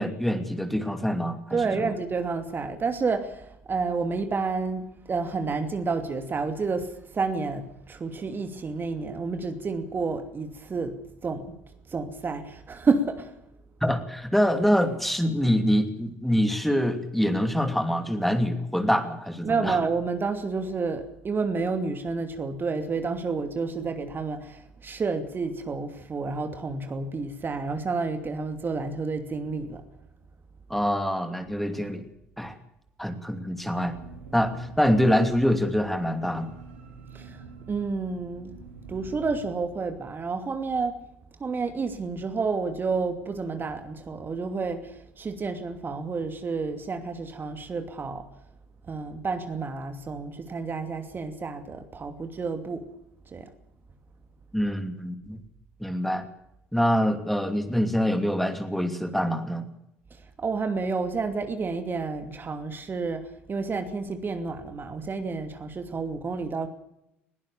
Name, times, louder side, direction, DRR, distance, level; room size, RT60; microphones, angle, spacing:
voice 1, 0.0-1.9 13.8-19.8 30.7-32.0 32.4-32.6 33.0-34.0 34.3-36.5 54.5-55.4 55.8-56.3 56.7-59.7, equal, ahead, 7 dB, 2.8 m, -25 dB
voice 2, 1.5-11.0 11.2-11.6 11.9-13.3 19.4-29.8 37.1-38.6 38.9-41.0 41.4-48.3 48.9-52.9 53.3-53.5 60.4-66.7, right 4 dB, 30° right, 7 dB, 2.7 m, -30 dB
sound 1, 33.3-39.5, right 4 dB, 85° right, 4.8 m, -46 dB
21.0 x 18.0 x 7.1 m, 0.81 s
figure-of-eight pair, 55°, 7 cm